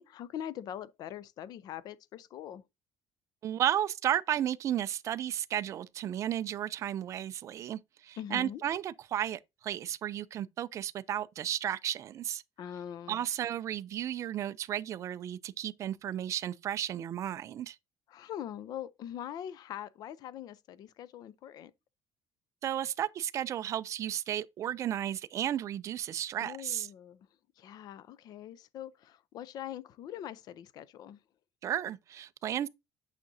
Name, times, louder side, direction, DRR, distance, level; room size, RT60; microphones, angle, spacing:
voice 1, 0.0-2.6 8.2-8.6 12.6-13.2 18.1-21.7 26.4-27.3 27.6-31.2, left 10 dB, 45° left, 0.5 m, -42 dB
voice 2, 3.4-12.4 13.1-17.8 22.6-26.9 31.6-32.7, right 11 dB, 35° right, 0.4 m, -33 dB
8.9 x 5.8 x 2.6 m
cardioid pair, 180°, 9 cm